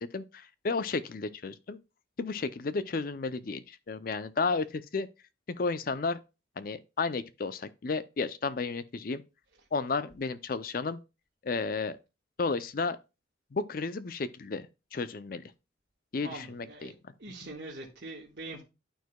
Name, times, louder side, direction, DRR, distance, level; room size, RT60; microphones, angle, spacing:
voice 1, 0.1-1.8 2.2-5.1 5.5-6.2 6.6-9.2 9.7-11.0 11.4-12.0 12.4-13.0 13.5-14.7 14.9-15.4 16.1-16.9, left 4 dB, 50° left, 0.4 m, -32 dB
voice 2, 16.2-16.9 17.2-18.6, right 2 dB, 60° right, 1.4 m, -43 dB
11.5 x 4.6 x 2.2 m
head